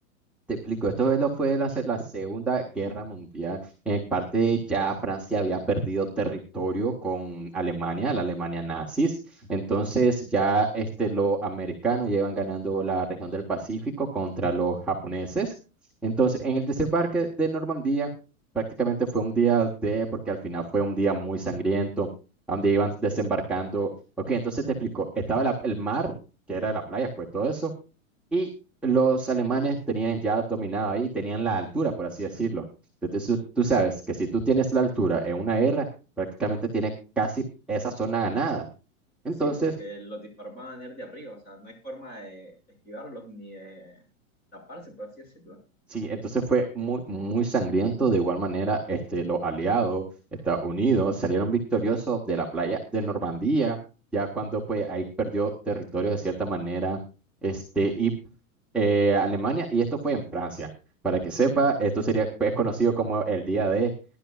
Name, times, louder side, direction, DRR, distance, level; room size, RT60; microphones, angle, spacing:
voice 1, 0.5-15.5 16.0-18.1 18.5-22.1 22.5-23.9 24.3-26.1 26.5-27.7 28.3-28.5 28.8-32.6 33.1-35.9 36.2-36.9 37.2-37.4 37.7-38.7 39.2-39.7 45.9-50.0 50.4-53.8 54.1-57.0 57.4-58.1 58.7-60.7 61.0-63.9, right 4 dB, ahead, -4 dB, 1.3 m, -26 dB
voice 2, 39.3-42.5 42.8-44.1 44.5-45.6, equal, 20° left, 2 dB, 6.5 m, -42 dB
21.5 x 11.5 x 2.4 m, 0.32 s
supercardioid pair, 165°, 43 cm